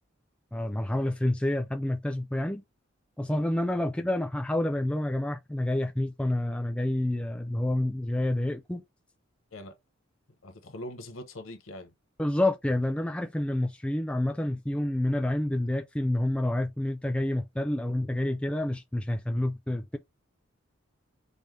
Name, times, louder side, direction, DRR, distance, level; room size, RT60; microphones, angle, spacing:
voice 1, 0.5-2.6 3.2-8.8 12.2-20.0, left 1 dB, 5° left, 0.3 m, -28 dB
voice 2, 10.4-11.9, left 1 dB, 75° left, 1.0 m, -42 dB
5.3 x 2.1 x 3.2 m
head